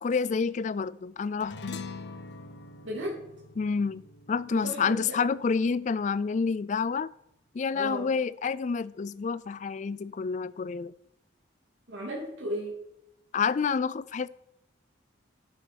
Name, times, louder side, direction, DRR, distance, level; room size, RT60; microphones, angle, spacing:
voice 1, 0.0-1.6 3.6-7.1 7.5-10.9 13.3-14.3, left 5 dB, 40° left, 0.3 m, -28 dB
sound 1, 1.4-6.1, left 4 dB, 60° left, 0.8 m, -43 dB
voice 2, 2.8-3.3 4.5-5.2 7.7-8.1 11.9-12.7, equal, 75° right, 2.9 m, -35 dB
9.1 x 7.6 x 6.3 m
head